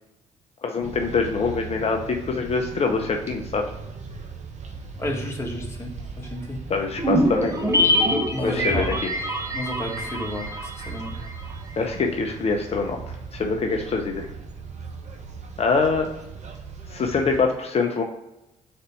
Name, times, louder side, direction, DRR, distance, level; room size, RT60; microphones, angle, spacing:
voice 1, 0.6-3.6 6.7-7.5 8.4-9.1 11.8-13.0 13.3-14.3 15.6-16.1 16.9-18.0, left 4 dB, 45° left, 3 dB, 0.8 m, -24 dB
sound 1, 0.8-17.4, right 5 dB, 50° right, 1.1 m, -38 dB
voice 2, 5.0-5.9 6.2-6.6 8.3-9.0 9.5-11.1, left 1 dB, 20° left, -1 dB, 1.9 m, -32 dB
sound 2, 7.0-11.5 11.7-11.8, equal, 20° right, 1.3 m, -24 dB
4.4 x 4.1 x 5.3 m, 0.92 s
hypercardioid pair, 50°, 15 cm